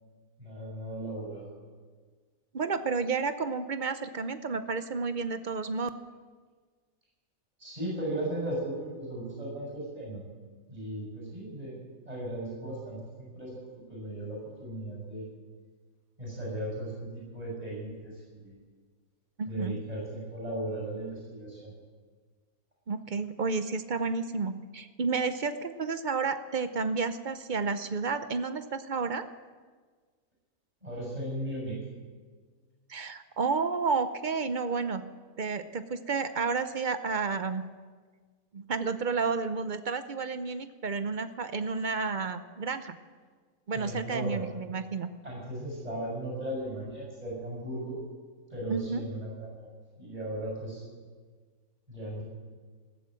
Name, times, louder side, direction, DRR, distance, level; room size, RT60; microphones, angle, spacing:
voice 1, 0.4-1.5 7.6-10.2 10.7-11.8 12.1-15.2 16.2-18.6 19.5-21.7 30.8-31.8 43.7-44.5 45.2-47.9 48.5-49.5 50.0-50.8 51.9-52.2, right 1 dB, 25° right, -3 dB, 6.6 m, -36 dB
voice 2, 2.5-5.9 19.4-19.8 22.9-29.3 32.9-35.0 35.4-37.7 38.5-43.0 43.7-45.1 48.7-49.0, right 4 dB, 45° right, 11 dB, 0.6 m, -31 dB
15.0 x 12.5 x 7.6 m, 1.5 s
omnidirectional pair, 1.5 m